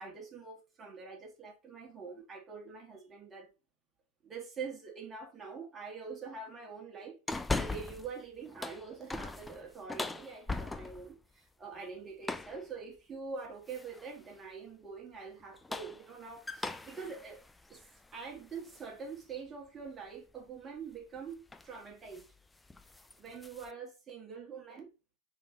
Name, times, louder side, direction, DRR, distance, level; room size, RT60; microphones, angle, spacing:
voice 1, 0.0-3.5 4.2-17.4 17.7-17.8 18.1-22.2 23.2-24.9, right 5 dB, 20° right, 1.4 m, -45 dB
sound 1, 7.3-8.1 8.5-11.1 12.2-12.6 13.7-14.1 15.4-18.9 19.3-19.4 21.0-21.2 21.5-21.8 22.1-22.3 22.7-23.7, left 3 dB, 10° left, 0.3 m, -39 dB
3.7 x 3.2 x 3.7 m
figure-of-eight pair, 90°, 0 cm